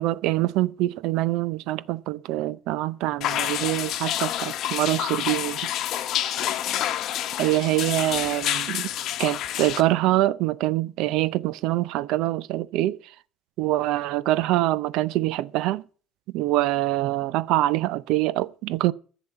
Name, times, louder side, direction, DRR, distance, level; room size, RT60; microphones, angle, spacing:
voice 1, 0.0-5.6 7.4-8.9 9.2-13.0 13.6-15.8 16.3-18.9, right 16 dB, 75° right, 0.6 m, -24 dB
sound 1, 3.2-9.8, left 12 dB, 60° left, 1.2 m, -28 dB
11.0 x 7.3 x 8.5 m
cardioid pair, 120°, 0 cm